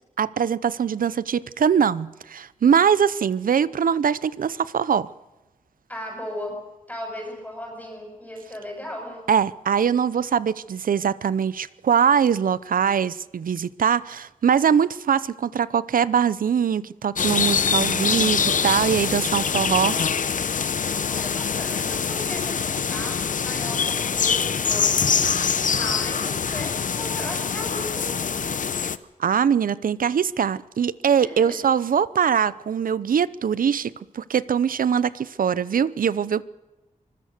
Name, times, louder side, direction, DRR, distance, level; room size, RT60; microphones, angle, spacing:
voice 1, 0.2-5.1 9.3-20.0 29.2-36.4, right 7 dB, 90° right, 0.7 m, -22 dB
voice 2, 5.9-6.6 6.9-9.2 21.1-28.5 31.2-31.6, equal, 10° left, 6.9 m, -37 dB
sound 1, 17.2-29.0, left 6 dB, 70° left, 0.8 m, -24 dB
24.5 x 21.0 x 6.6 m
wide cardioid pair, 135°, 14 cm